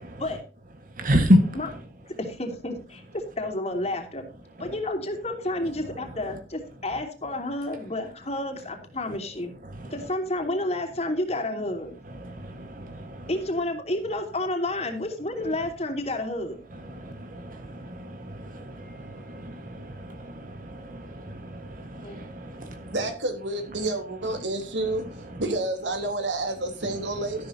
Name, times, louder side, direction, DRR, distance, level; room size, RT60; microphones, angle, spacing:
voice 1, 1.0-1.6 9.8-9.9 12.2-13.3 16.9-22.9, equal, 50° right, 1.6 m, -28 dB
voice 2, 2.2-4.3 4.6-9.5 9.9-12.0 13.3-16.6 22.0-22.2, left 1 dB, 35° left, 3.0 m, -30 dB
voice 3, 22.9-27.5, right 2 dB, 90° right, 3.4 m, -29 dB
13.0 x 11.5 x 2.8 m
head